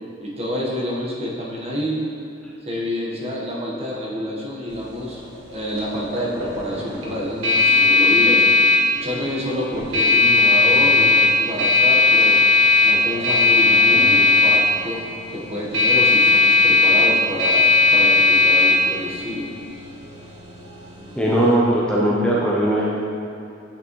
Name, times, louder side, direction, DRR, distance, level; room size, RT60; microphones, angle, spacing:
voice 1, 0.2-2.1 2.6-5.2 5.5-12.4 12.8-19.9, equal, 30° right, -4 dB, 1.1 m, -28 dB
sound 1, 4.7-21.5, left 3 dB, 85° right, 1.3 m, -18 dB
voice 2, 21.2-22.9, right 1 dB, 5° left, -6 dB, 0.5 m, -19 dB
8.4 x 6.1 x 3.0 m, 2.6 s
head